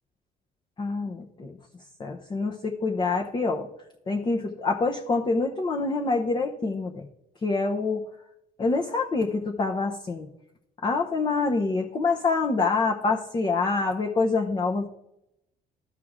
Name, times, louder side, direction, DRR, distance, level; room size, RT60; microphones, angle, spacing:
voice 1, 0.8-1.6 2.0-3.7 4.1-7.1 7.4-8.0 8.6-10.3 10.8-14.9, left 3 dB, 30° left, 0 dB, 0.9 m, -26 dB
13.5 x 4.6 x 3.7 m, 0.82 s
cardioid pair, 110°, 17 cm